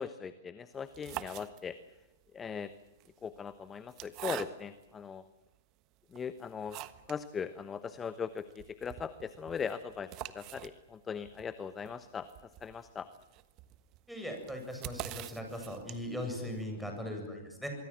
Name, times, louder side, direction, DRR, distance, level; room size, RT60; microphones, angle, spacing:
voice 1, 0.0-1.8 2.3-2.7 3.2-5.2 6.1-6.8 7.1-13.1, left 6 dB, 15° left, 13 dB, 1.1 m, -39 dB
sound 1, 0.8-2.0 2.9-4.9 5.5-5.6 6.1-7.3 7.6-7.7 7.9-8.0 8.4-16.3, right 15 dB, 35° right, 1.3 m, -45 dB
voice 2, 14.1-17.7, left 1 dB, ahead, 3 dB, 8.0 m, -39 dB
25.5 x 23.5 x 7.6 m, 1.1 s
figure-of-eight pair, 110°, 0 cm